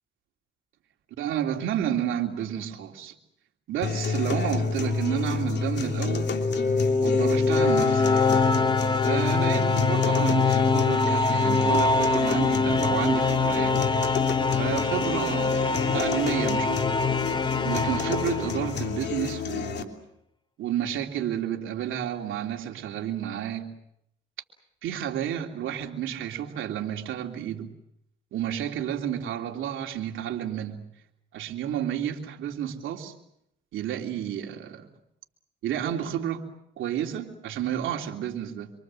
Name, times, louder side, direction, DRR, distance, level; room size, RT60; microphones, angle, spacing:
voice 1, 1.2-3.1 3.7-6.4 7.0-8.1 9.0-14.0 14.5-17.0 17.6-20.0 20.6-23.7 24.8-27.7 28.3-30.8 31.3-33.1 33.7-34.9 35.6-36.4 36.8-38.7, right 10 dB, 80° right, 2 dB, 3.2 m, -31 dB
sound 1, 3.8-19.8, left 5 dB, 60° left, 3.1 m, -29 dB
sound 2, 6.0-19.1, left 4 dB, 25° left, 1.2 m, -24 dB
26.5 x 24.5 x 7.7 m, 0.78 s
cardioid pair, 90°, 20 cm